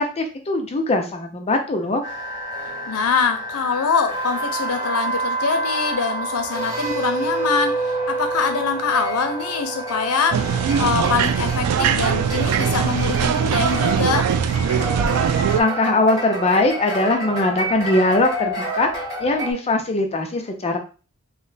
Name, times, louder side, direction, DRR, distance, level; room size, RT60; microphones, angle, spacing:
voice 1, 0.0-2.0 15.5-20.8, left 2 dB, 30° left, 4 dB, 0.5 m, -21 dB
sound 1, 2.0-19.5, right 2 dB, 15° right, 1.1 m, -28 dB
voice 2, 2.9-14.5, left 5 dB, 80° left, 7 dB, 0.6 m, -24 dB
sound 2, 10.3-15.6, right 7 dB, 80° right, 0.3 m, -21 dB
3.2 x 2.1 x 4.0 m, 0.36 s
head